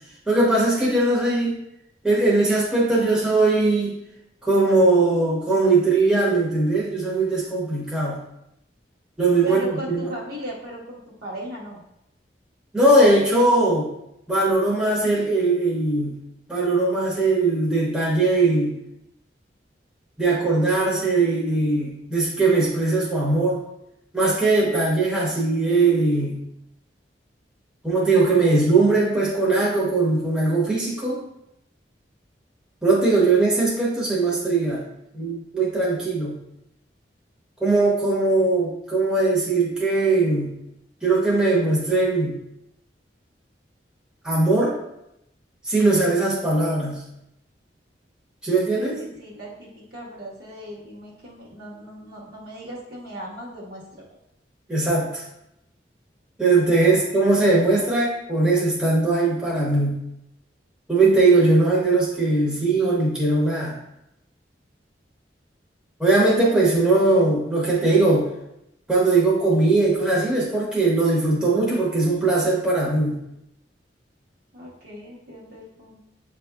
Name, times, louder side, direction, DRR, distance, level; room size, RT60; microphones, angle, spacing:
voice 1, 0.3-1.6 2.0-4.0 4.4-8.2 9.2-10.1 12.7-13.9 14.3-16.2 16.5-18.8 20.2-23.6 24.1-26.4 27.8-31.2 32.8-34.8 35.1-36.4 37.6-40.5 41.0-42.4 44.2-44.8 45.6-47.0 48.4-49.0 54.7-55.2 56.4-60.0 60.9-63.8 66.0-68.3 68.9-73.2, right 2 dB, 5° right, -6 dB, 0.8 m, -20 dB
voice 2, 9.4-11.8 48.7-54.1 56.8-57.0 74.5-76.0, right 1 dB, 55° right, -5 dB, 1.3 m, -37 dB
8.0 x 2.7 x 2.3 m, 0.83 s
head